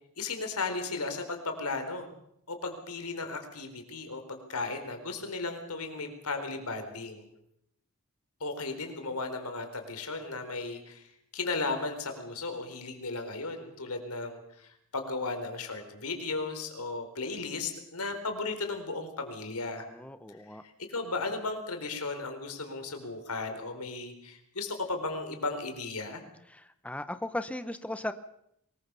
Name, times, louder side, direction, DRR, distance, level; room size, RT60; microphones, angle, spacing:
voice 1, 0.2-2.1 2.5-7.2 8.4-19.8 20.5-26.2, left 3 dB, 85° left, 6 dB, 4.3 m, -35 dB
voice 2, 19.9-20.6 26.5-28.1, left 1 dB, 5° left, 11 dB, 0.8 m, -37 dB
23.5 x 21.0 x 6.9 m, 0.76 s
head